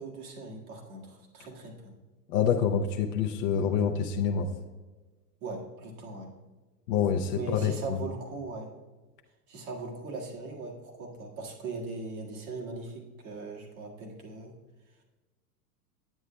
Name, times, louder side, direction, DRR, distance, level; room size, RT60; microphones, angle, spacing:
voice 1, 0.0-2.0 5.4-6.3 7.4-8.7 9.5-14.5, right 3 dB, 60° right, 0 dB, 1.9 m, -39 dB
voice 2, 2.3-4.5 6.9-8.0, left 7 dB, 30° left, 2 dB, 0.4 m, -27 dB
9.6 x 8.2 x 2.2 m, 1.3 s
hypercardioid pair, 115°, 50 cm